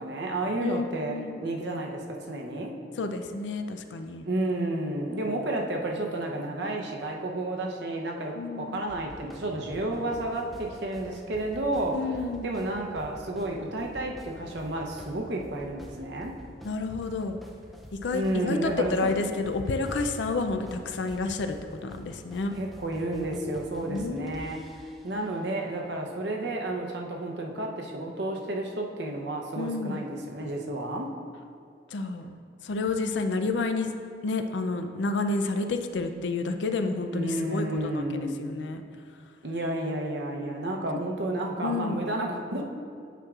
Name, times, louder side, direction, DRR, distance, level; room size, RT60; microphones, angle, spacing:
voice 1, 0.0-2.7 4.3-12.0 12.4-16.3 18.1-19.1 22.6-24.6 25.0-31.1 37.1-38.4 39.4-42.6, right 1 dB, 70° right, 1 dB, 0.7 m, -31 dB
voice 2, 0.6-1.4 3.0-4.3 8.4-8.8 11.9-12.6 16.6-17.4 17.9-22.6 23.9-24.4 29.6-30.0 31.9-32.3 32.6-33.9 34.2-38.8 40.9-41.0 41.6-42.1, left 3 dB, 75° left, 7 dB, 0.4 m, -30 dB
sound 1, 8.7-25.4, equal, ahead, 0.4 m, -48 dB
9.1 x 6.2 x 2.4 m, 2.3 s
head